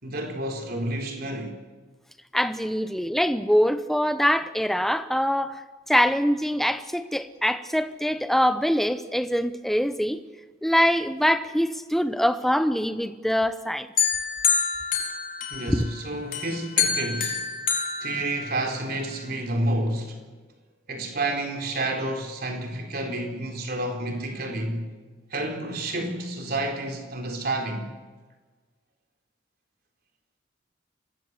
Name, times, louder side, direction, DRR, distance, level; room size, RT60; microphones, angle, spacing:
voice 1, 0.0-1.6 15.5-17.4 18.0-20.2 20.9-25.0 25.3-27.9, right 1 dB, 50° right, 4.0 m, -30 dB
voice 2, 2.3-5.6 5.9-10.2 10.6-13.9 15.7-15.9, equal, ahead, 0.8 m, -24 dB
sound 1, 14.0-15.9 16.3-18.9, left 6 dB, 45° left, 4.4 m, -27 dB
25.5 x 18.5 x 8.1 m
head